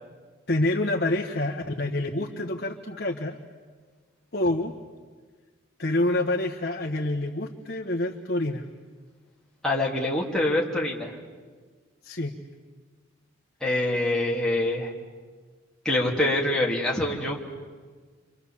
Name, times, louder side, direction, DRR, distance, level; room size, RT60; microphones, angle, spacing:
voice 1, 0.5-3.4 4.3-4.7 5.8-8.6 12.0-12.3, left 1 dB, 50° left, 1 dB, 1.5 m, -27 dB
voice 2, 9.6-11.1 13.6-14.9 15.8-17.4, left 1 dB, 5° left, -5 dB, 2.8 m, -25 dB
29.5 x 26.0 x 7.3 m, 1.5 s
head